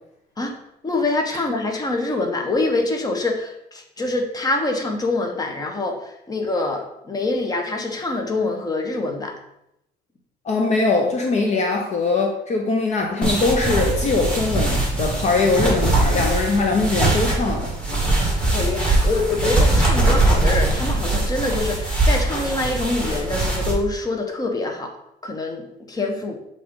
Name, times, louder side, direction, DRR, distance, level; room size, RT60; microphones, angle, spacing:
voice 1, 0.8-9.3 18.5-24.9 25.2-26.4, left 2 dB, 20° left, 3 dB, 1.1 m, -25 dB
voice 2, 10.4-17.7, left 3 dB, 45° left, 2 dB, 0.8 m, -21 dB
sound 1, 13.2-23.7, right 2 dB, 5° left, 2.2 m, -21 dB
7.5 x 3.9 x 3.7 m, 0.80 s
cardioid pair, 110°, 17 cm